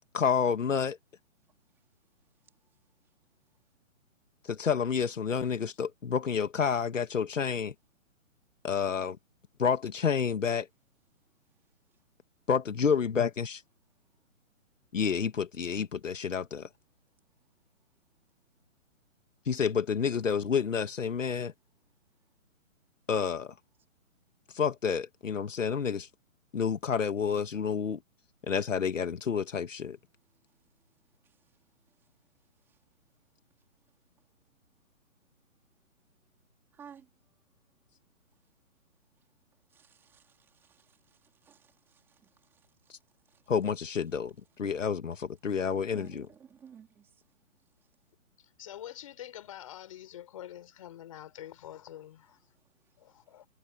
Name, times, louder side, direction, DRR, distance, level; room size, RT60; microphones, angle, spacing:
voice 1, 0.1-1.0 4.5-7.7 8.6-9.2 9.6-10.7 12.5-13.6 14.9-16.7 19.5-21.5 23.1-23.5 24.5-26.1 26.5-28.0 28.5-30.0 43.5-44.3 44.6-46.3, left 6 dB, 65° left, 2.1 m, -29 dB
voice 2, 36.7-37.1 39.7-42.6 43.3-43.4 45.9-47.1, right 7 dB, 5° right, 3.9 m, -55 dB
voice 3, 48.4-52.4 53.0-53.5, left 12 dB, 25° left, 5.7 m, -46 dB
hypercardioid pair, 180°, 40 cm